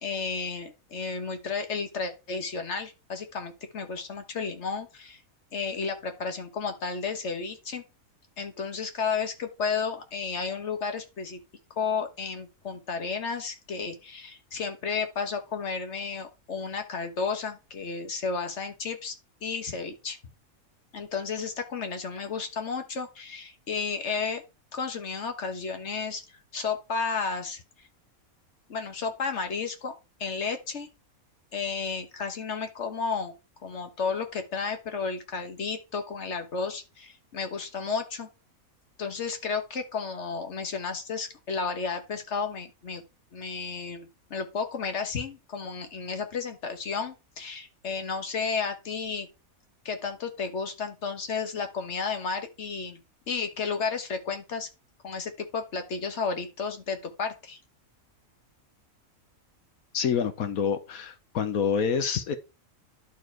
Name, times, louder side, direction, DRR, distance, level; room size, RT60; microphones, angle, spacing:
voice 1, 0.0-5.2 5.5-7.8 8.4-11.4 11.7-19.1 19.4-20.2 20.9-24.4 24.7-27.6 28.7-29.9 30.2-30.9 31.5-33.3 33.6-38.3 39.0-43.0 43.3-49.3 49.8-53.0 53.3-54.7 55.0-57.6, left 5 dB, 55° left, 1.6 m, -32 dB
voice 2, 59.9-62.4, left 7 dB, 80° left, 1.3 m, -27 dB
11.0 x 4.6 x 4.5 m
omnidirectional pair, 1.5 m